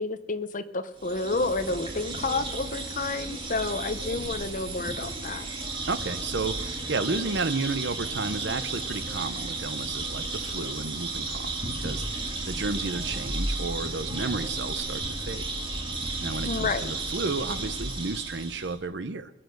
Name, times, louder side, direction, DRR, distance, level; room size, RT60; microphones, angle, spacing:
voice 1, 0.0-5.5 16.4-16.9, left 3 dB, 45° left, 10 dB, 1.0 m, -30 dB
sound 1, 1.0-18.8, right 2 dB, 30° right, 2.4 m, -33 dB
voice 2, 5.9-11.5 11.8-15.5 16.2-19.3, right 3 dB, 65° right, 11 dB, 0.8 m, -32 dB
22.0 x 8.7 x 6.6 m, 0.97 s
head